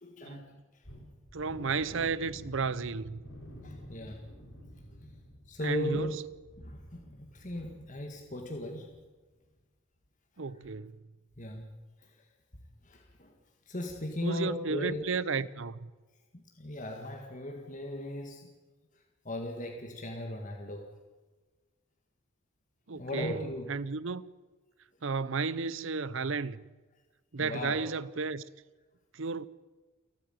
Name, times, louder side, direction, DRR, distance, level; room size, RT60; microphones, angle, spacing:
voice 1, 0.0-0.4 3.6-4.2 5.5-6.2 6.6-8.9 11.4-11.7 12.8-13.3 13.7-15.0 16.6-18.5 19.3-20.9 22.9-23.7 27.4-27.9, left 1 dB, 35° left, 1.9 m, -37 dB
sound 1, 0.8-8.6 8.9-9.1 9.5-9.6, equal, 60° left, 5.1 m, -49 dB
voice 2, 1.3-3.2 5.6-6.2 10.4-11.0 14.2-15.8 22.9-24.2 25.0-26.6 27.3-28.4 29.1-29.5, right 4 dB, 60° right, 0.7 m, -33 dB
29.0 x 9.7 x 9.2 m
head